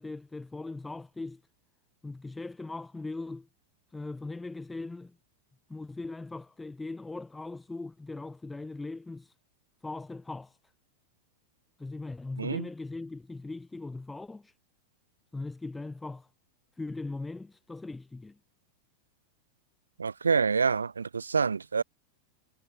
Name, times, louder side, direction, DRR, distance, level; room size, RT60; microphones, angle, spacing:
voice 1, 0.0-1.4 2.0-3.5 3.9-5.1 5.7-9.3 9.8-10.6 11.8-14.5 15.3-16.3 16.8-18.4, left 3 dB, 10° left, 7.5 m, -39 dB
voice 2, 20.0-21.8, right 5 dB, 75° right, 2.3 m, -27 dB
figure-of-eight pair, 90°, 0 cm